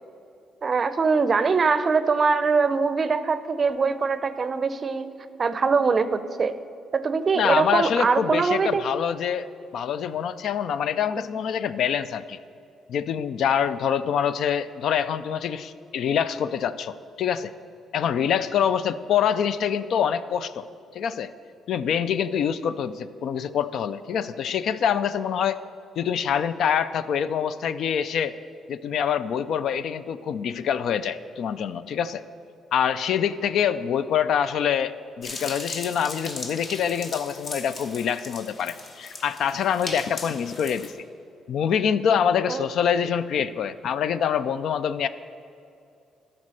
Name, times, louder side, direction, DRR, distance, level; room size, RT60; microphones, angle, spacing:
voice 1, 0.6-5.1 5.4-6.5 6.9-8.8 42.5-42.7, right 4 dB, 40° right, 13 dB, 0.5 m, -22 dB
voice 2, 7.4-9.5 9.7-12.4 12.9-17.5 17.9-20.7 20.9-21.3 21.7-25.6 26.0-28.4 28.7-32.2 32.7-40.9 41.5-45.1, left 8 dB, 70° left, 14 dB, 0.3 m, -25 dB
sound 1, 35.2-40.9, left 3 dB, 50° left, 1.1 m, -38 dB
12.0 x 4.5 x 6.3 m, 2.6 s
cardioid pair, 90°, 0 cm